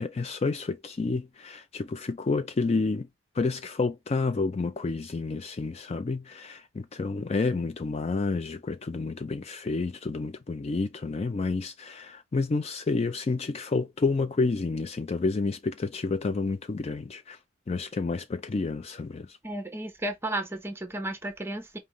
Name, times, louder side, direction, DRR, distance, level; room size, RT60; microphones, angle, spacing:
voice 1, 0.0-3.1 3.3-17.4 17.7-19.4, left 3 dB, 30° left, 0.3 m, -29 dB
voice 2, 19.4-21.8, right 1 dB, 10° right, 0.8 m, -33 dB
5.3 x 2.8 x 3.0 m
head